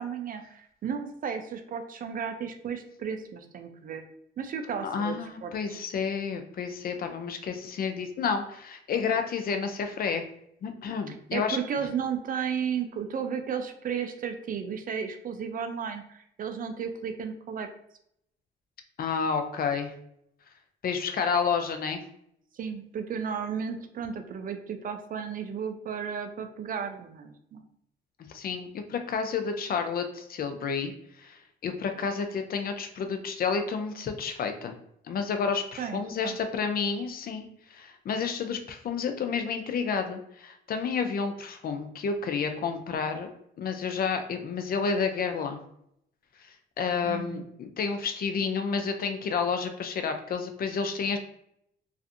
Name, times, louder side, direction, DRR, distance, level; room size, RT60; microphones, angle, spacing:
voice 1, 0.0-4.0 4.4-5.9 11.1-17.7 22.5-27.6 35.8-36.4 47.0-47.4, right 7 dB, 45° right, 6 dB, 0.4 m, -34 dB
voice 2, 4.8-10.2 10.6-11.6 19.0-19.9 20.8-22.0 28.3-30.9 31.2-34.7 35.0-43.3 43.6-45.6 46.8-51.2, left 5 dB, 50° left, 6 dB, 0.4 m, -30 dB
2.5 x 2.4 x 2.5 m, 0.73 s
cardioid pair, 90°, 20 cm